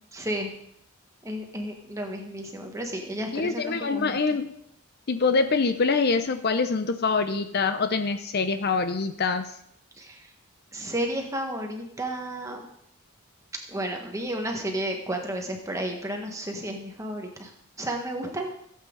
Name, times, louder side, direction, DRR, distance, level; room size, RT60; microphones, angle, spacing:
voice 1, 0.1-0.5 1.2-4.2 10.0-10.1 10.7-12.7 13.7-17.5 17.8-18.5, right 1 dB, 15° right, 2 dB, 1.6 m, -32 dB
voice 2, 3.3-4.5 5.1-9.5, left 4 dB, 45° left, 9 dB, 0.6 m, -25 dB
16.5 x 8.4 x 3.9 m, 0.71 s
head